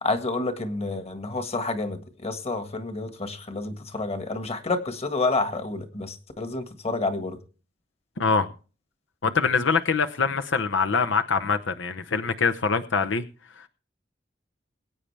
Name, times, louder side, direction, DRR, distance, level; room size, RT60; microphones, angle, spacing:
voice 1, 0.0-7.4, left 3 dB, 35° left, 1.7 m, -29 dB
voice 2, 8.2-8.5 9.2-13.2, left 5 dB, 85° left, 0.8 m, -24 dB
22.0 x 8.8 x 3.3 m
head